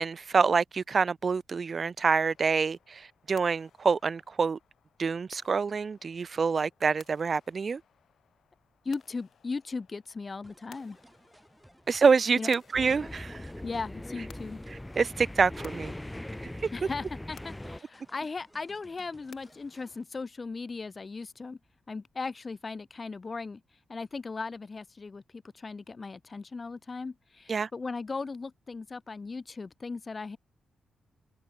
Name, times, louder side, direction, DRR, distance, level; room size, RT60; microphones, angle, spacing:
voice 1, 0.0-4.6 5.0-7.8 11.9-13.4 15.0-15.9 16.4-16.5 27.5-27.7, right 5 dB, 50° right, 0.3 m, -26 dB
sound 1, 2.0-20.0, left 8 dB, 70° left, 1.4 m, -59 dB
voice 2, 8.8-11.0 12.4-12.5 13.6-14.6 16.7-21.6 21.9-23.6 23.9-30.4, left 4 dB, 40° left, 0.6 m, -37 dB
sound 2, 10.4-20.0, right 1 dB, 5° right, 5.7 m, -59 dB
sound 3, 12.7-17.8, left 1 dB, 10° left, 1.2 m, -41 dB
cardioid pair, 65°, 0 cm